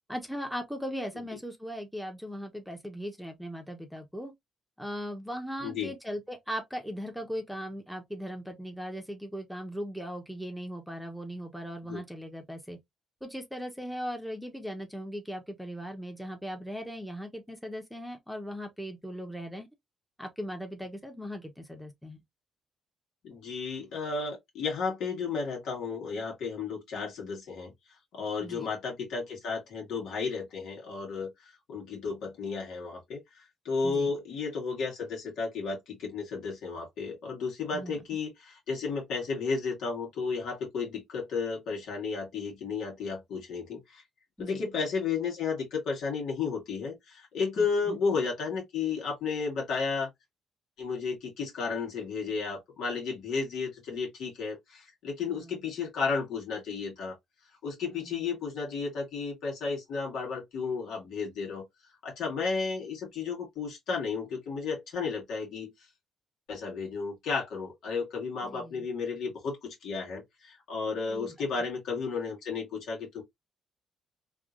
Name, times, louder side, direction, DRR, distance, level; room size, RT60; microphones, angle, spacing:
voice 1, 0.1-4.3 4.8-12.8 13.2-19.7 20.2-22.2 28.4-28.7 33.8-34.1 37.7-38.0 44.4-44.6 47.6-48.0 55.3-55.6 57.9-58.2 68.4-68.9 71.1-71.3, equal, ahead, 0.9 m, -38 dB
voice 2, 5.6-5.9 11.8-12.0 23.2-27.7 28.1-33.2 33.6-44.0 44.4-50.1 50.8-57.2 57.6-61.6 62.0-65.7 66.5-73.2, left 5 dB, 80° left, 1.6 m, -33 dB
3.5 x 2.8 x 2.5 m
cardioid pair, 90°, 0 cm